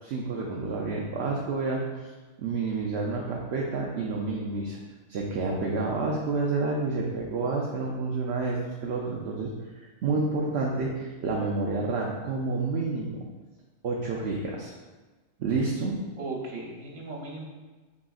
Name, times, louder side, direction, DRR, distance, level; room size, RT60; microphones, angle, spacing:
voice 1, 0.0-2.1 2.4-4.8 5.1-13.2 13.8-14.7 15.4-15.9, right 3 dB, 65° right, -2 dB, 0.7 m, -29 dB
voice 2, 16.2-17.5, right 3 dB, 85° right, -3 dB, 1.4 m, -36 dB
5.0 x 3.6 x 2.3 m, 1.3 s
omnidirectional pair, 1.4 m